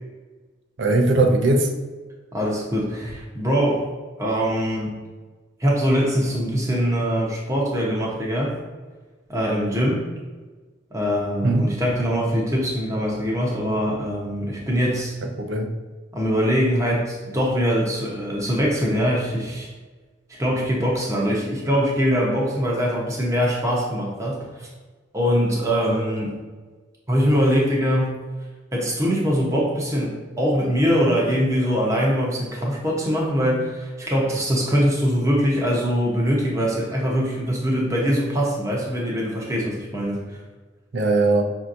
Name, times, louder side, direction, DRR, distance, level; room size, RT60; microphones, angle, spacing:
voice 1, 0.8-1.7 11.4-11.7 15.4-15.7 40.9-41.4, right 2 dB, 65° right, 4 dB, 0.5 m, -19 dB
voice 2, 2.3-3.9 4.2-5.0 5.6-8.6 9.3-10.0 10.9-15.1 16.1-19.7 20.3-24.7 25.1-26.3 27.1-28.2 28.7-40.2, equal, 15° right, -3 dB, 0.8 m, -22 dB
5.6 x 2.8 x 2.5 m, 1.3 s
head